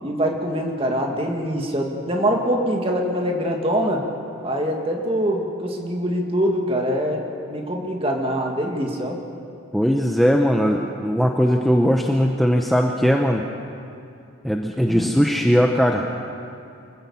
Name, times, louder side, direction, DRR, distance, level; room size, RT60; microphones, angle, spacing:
voice 1, 0.0-4.0 4.4-7.2 7.5-9.2 14.8-15.2, equal, 25° right, 1 dB, 2.1 m, -24 dB
voice 2, 9.7-13.4 14.4-16.1, equal, ahead, 1 dB, 0.7 m, -19 dB
25.0 x 15.5 x 7.1 m, 2.6 s
head